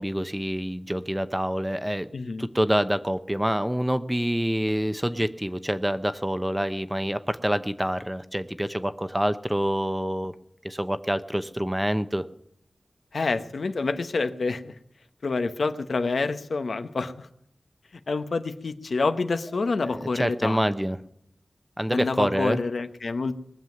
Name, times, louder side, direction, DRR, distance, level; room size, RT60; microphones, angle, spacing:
voice 1, 0.0-2.1 2.4-10.4 10.6-12.2 19.8-21.0 21.8-22.6, equal, 10° right, 12 dB, 0.8 m, -26 dB
voice 2, 2.1-2.5 13.1-14.7 15.2-17.3 18.1-20.6 21.9-23.3, left 3 dB, 75° left, 9 dB, 1.0 m, -27 dB
20.0 x 7.4 x 9.4 m, 0.74 s
wide cardioid pair, 75°, 0 cm